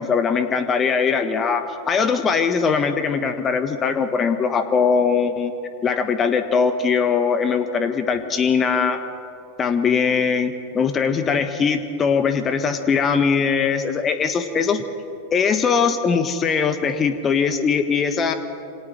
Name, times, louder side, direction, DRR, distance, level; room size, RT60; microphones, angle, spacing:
voice 1, 0.0-5.5 5.8-9.0 9.6-14.8 15.3-18.3, left 6 dB, 25° left, 9 dB, 1.5 m, -21 dB
28.0 x 26.5 x 4.5 m, 2.5 s
figure-of-eight pair, 90°, 0 cm